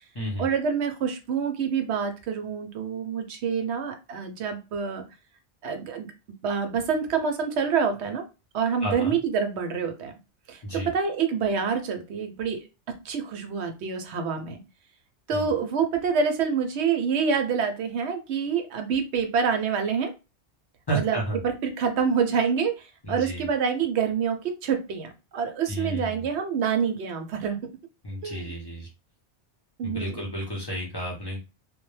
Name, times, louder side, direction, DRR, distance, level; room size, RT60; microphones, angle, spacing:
voice 1, 0.4-5.0 5.6-6.1 6.4-8.2 8.5-10.1 10.5-12.6 13.0-14.6 15.3-20.1 20.9-27.6 28.2-28.5 29.8-30.3, right 6 dB, 75° right, 6 dB, 0.8 m, -27 dB
voice 2, 8.8-9.2 10.6-10.9 15.3-15.5 20.9-21.4 23.0-23.5 25.7-26.2 28.0-28.9 29.8-31.4, right 1 dB, 25° left, -3 dB, 0.6 m, -31 dB
2.2 x 2.1 x 3.1 m, 0.28 s
omnidirectional pair, 1.2 m